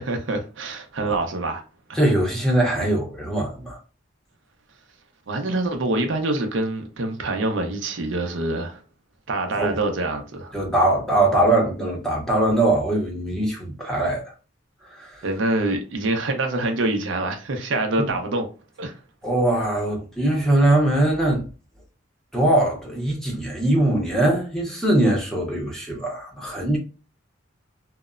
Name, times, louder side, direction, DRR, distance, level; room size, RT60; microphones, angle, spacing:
voice 1, 0.0-1.6 1.9-2.0 5.3-8.8 9.3-10.6 15.2-18.5 18.8-19.0, right 2 dB, 70° right, 0.5 m, -25 dB
voice 2, 1.9-3.8 9.6-9.7 10.5-14.3 14.9-15.2 18.0-18.1 19.2-21.4 22.3-26.8, right 1 dB, ahead, 0.6 m, -21 dB
2.9 x 2.0 x 2.4 m
head